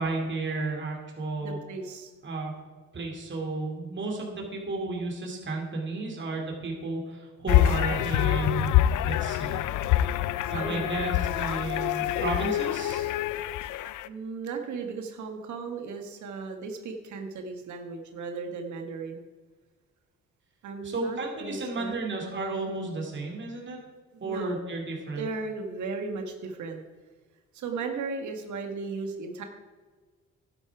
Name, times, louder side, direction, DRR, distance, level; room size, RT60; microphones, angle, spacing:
voice 1, 0.0-1.6 2.2-2.6 2.9-8.8 9.0-9.6 10.5-13.1 20.8-23.8 24.2-25.3, right 3 dB, 40° right, 0 dB, 2.9 m, -33 dB
voice 2, 1.4-2.1 10.4-10.9 14.1-19.2 20.6-22.0 24.1-24.6 25.2-26.8 27.5-29.4, right 4 dB, 75° right, 4 dB, 1.7 m, -36 dB
sound 1, 7.5-14.1, left 12 dB, 80° left, 0.5 m, -26 dB
11.5 x 9.7 x 4.8 m, 1.4 s
cardioid pair, 90°, 30 cm